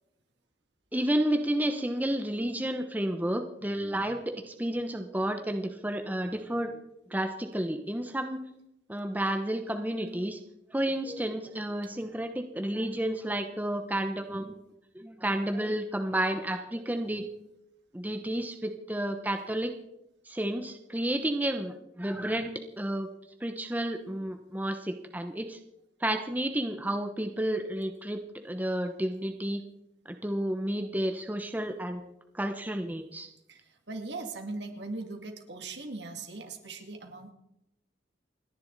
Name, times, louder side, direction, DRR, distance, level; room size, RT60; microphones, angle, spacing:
voice 1, 0.9-6.8 7.1-8.4 8.9-10.4 10.7-14.5 14.9-17.3 17.9-19.7 20.2-23.1 23.4-25.6 26.0-29.6 30.1-32.1 32.3-33.3, right 1 dB, 10° right, 6 dB, 0.8 m, -31 dB
voice 2, 33.5-37.3, right 3 dB, 65° right, 4 dB, 2.3 m, -39 dB
29.0 x 10.5 x 4.0 m, 0.85 s
head